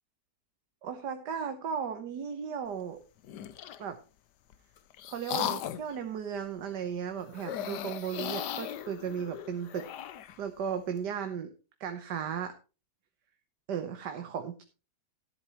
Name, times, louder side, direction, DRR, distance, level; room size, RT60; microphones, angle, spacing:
voice 1, 0.8-3.0 3.8-4.0 5.0-9.9 10.4-11.5 11.8-12.5 13.7-14.6, right 7 dB, 80° right, 7 dB, 1.7 m, -35 dB
sound 1, 3.2-3.9 4.5-6.0 7.3-10.4, left 10 dB, 85° left, 1.4 m, -37 dB
13.5 x 11.0 x 3.0 m, 0.32 s
omnidirectional pair, 1.8 m